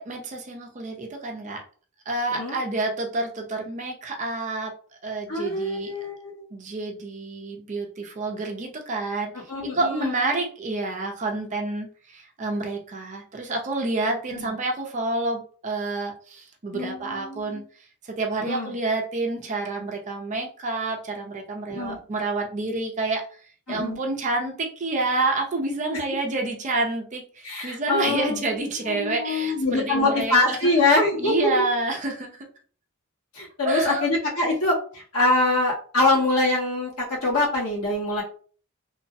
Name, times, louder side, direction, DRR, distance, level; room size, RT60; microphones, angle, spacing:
voice 1, 0.0-1.6 2.1-4.7 5.0-5.9 6.5-9.3 9.7-17.6 18.0-23.2 23.7-30.6 30.9-32.4 33.6-34.1, right 2 dB, 35° right, 2 dB, 0.5 m, -28 dB
voice 2, 5.3-6.4 9.5-10.2 14.3-14.5 16.7-17.6 18.4-18.7 21.7-22.0 23.7-24.0 27.4-31.3 33.3-38.2, left 2 dB, 70° left, -4 dB, 1.1 m, -24 dB
3.1 x 2.0 x 2.6 m, 0.43 s
head